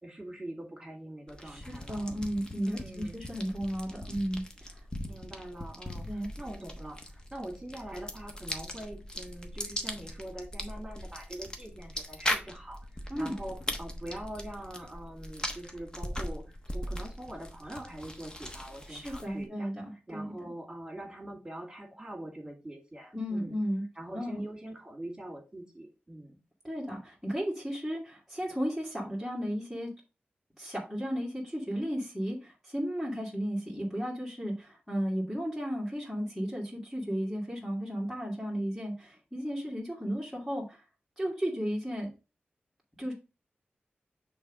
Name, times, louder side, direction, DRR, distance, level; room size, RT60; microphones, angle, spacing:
voice 1, 0.0-2.0 2.6-3.2 5.1-19.7 20.1-23.5 24.0-26.4, right 1 dB, 20° right, 2 dB, 2.5 m, -43 dB
sound 1, 1.3-19.5, left 1 dB, 20° left, 1.1 m, -40 dB
voice 2, 1.4-4.8 6.0-6.3 13.1-13.4 18.9-20.5 23.1-23.8 24.1-24.4 26.6-29.9 30.6-40.8 41.2-42.1 43.0-43.1, equal, ahead, -5 dB, 2.0 m, -34 dB
6.2 x 3.5 x 5.1 m, 0.30 s
wide cardioid pair, 90°, 4 cm